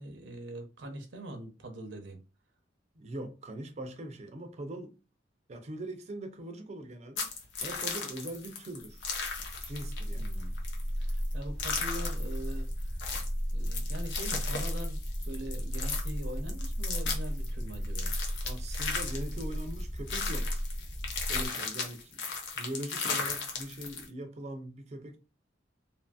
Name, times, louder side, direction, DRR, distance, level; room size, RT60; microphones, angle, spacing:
voice 1, 0.0-2.2 10.1-10.6 11.0-13.0 13.5-18.1, right 1 dB, 80° right, 0.6 m, -42 dB
voice 2, 3.0-4.9 5.5-7.3 7.6-9.0 9.7-10.3 18.4-20.6 21.3-25.2, right 1 dB, 40° right, 0.5 m, -41 dB
sound 1, 7.2-24.1, left 5 dB, 85° left, 0.7 m, -36 dB
sound 2, 8.9-21.5, equal, 15° left, 0.6 m, -35 dB
2.7 x 2.6 x 2.3 m
head